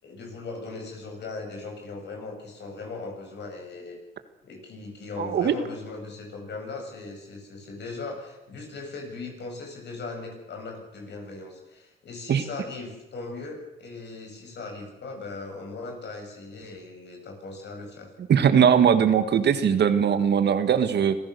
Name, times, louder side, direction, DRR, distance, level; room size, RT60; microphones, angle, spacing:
voice 1, 0.0-4.0 4.4-18.1, left 3 dB, 60° left, 2 dB, 7.8 m, -38 dB
voice 2, 5.2-5.5 12.3-12.4 18.3-21.2, right 8 dB, 60° right, 10 dB, 1.8 m, -20 dB
26.0 x 16.0 x 6.9 m, 1.0 s
cardioid pair, 90°, 20 cm